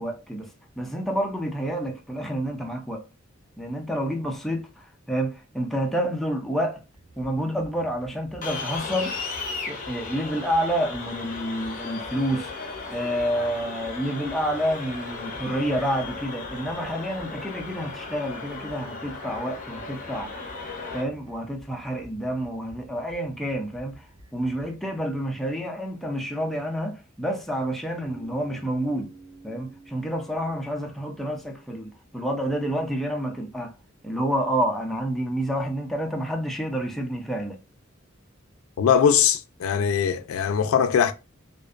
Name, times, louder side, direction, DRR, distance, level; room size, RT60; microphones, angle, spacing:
voice 1, 0.0-3.0 3.6-6.8 7.2-9.2 9.7-12.5 12.9-20.4 20.9-24.1 24.3-29.1 29.4-33.7 34.0-37.6, equal, ahead, 0.3 m, -29 dB
sound 1, 6.9-24.8, right 1 dB, 70° right, 1.0 m, -51 dB
sound 2, 8.4-21.0, left 4 dB, 40° left, 0.6 m, -36 dB
Bass guitar, 28.0-32.1, right 3 dB, 45° right, 0.9 m, -49 dB
voice 2, 38.8-41.1, left 7 dB, 85° left, 0.3 m, -21 dB
2.5 x 2.2 x 2.4 m
head